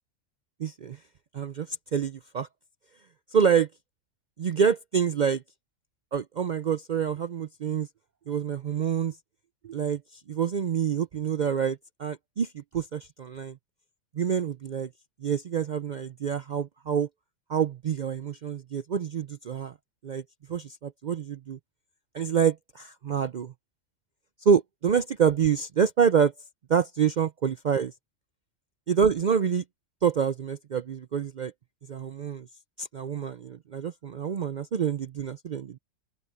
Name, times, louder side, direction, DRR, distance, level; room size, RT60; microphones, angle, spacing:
voice 1, 0.6-1.0 1.3-2.5 3.3-3.7 4.4-5.4 6.1-7.9 8.3-9.2 9.6-13.6 14.1-14.9 15.2-17.1 17.5-19.7 20.0-20.2 20.5-21.6 22.1-23.5 24.4-26.3 26.7-27.9 28.9-29.6 30.0-31.5 31.9-32.5 32.8-35.8, right 7 dB, 60° right, 0.5 m, -27 dB
open air
omnidirectional pair, 1.4 m